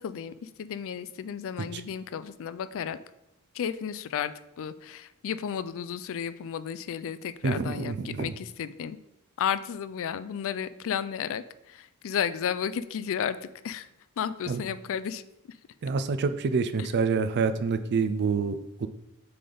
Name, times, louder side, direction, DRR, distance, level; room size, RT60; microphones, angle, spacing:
voice 1, 0.0-3.0 3.5-4.3 4.6-9.0 9.4-13.9 14.2-15.2 16.8-16.9, left 8 dB, 65° left, 14 dB, 0.4 m, -33 dB
voice 2, 7.4-8.3 14.5-14.6 15.8-18.9, right 5 dB, 50° right, 10 dB, 0.4 m, -27 dB
7.7 x 3.4 x 3.9 m, 0.88 s
head